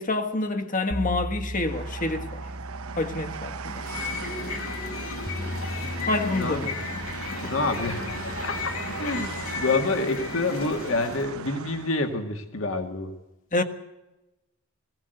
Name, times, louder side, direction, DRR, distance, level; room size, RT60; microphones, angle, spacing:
voice 1, 0.0-2.4 3.0-3.8 6.1-6.7 13.5-13.6, left 2 dB, 40° left, 1.5 m, -27 dB
sound 1, 0.9-9.6, equal, 10° right, 0.8 m, -37 dB
Train, 1.6-12.1, right 6 dB, 85° right, 0.8 m, -40 dB
sound 2, 3.7-11.3, left 4 dB, 85° left, 5.0 m, -34 dB
voice 2, 6.3-6.7 7.4-13.1, left 3 dB, 65° left, 2.0 m, -28 dB
20.0 x 17.0 x 7.9 m
head